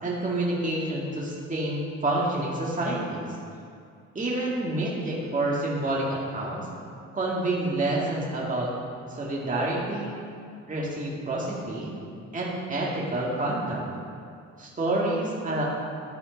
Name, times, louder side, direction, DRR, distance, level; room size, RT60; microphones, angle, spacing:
voice 1, 0.0-3.2 4.2-6.6 7.1-8.7 9.1-10.2 10.7-11.9 12.3-13.8 14.6-15.6, right 2 dB, 25° right, -5 dB, 2.0 m, -28 dB
12.5 x 4.2 x 5.1 m, 2.4 s
cardioid pair, 90°, 30 cm